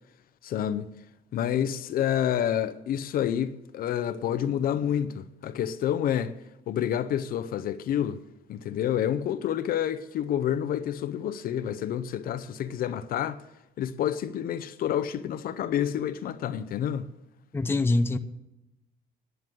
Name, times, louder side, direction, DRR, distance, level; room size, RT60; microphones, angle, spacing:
voice 1, 0.4-0.9 1.3-6.3 6.7-8.2 8.5-13.4 13.8-17.1, left 10 dB, 60° left, 0.6 m, -28 dB
voice 2, 17.5-18.2, left 2 dB, 15° left, 0.6 m, -24 dB
10.5 x 9.4 x 7.7 m
cardioid pair, 110°, 17 cm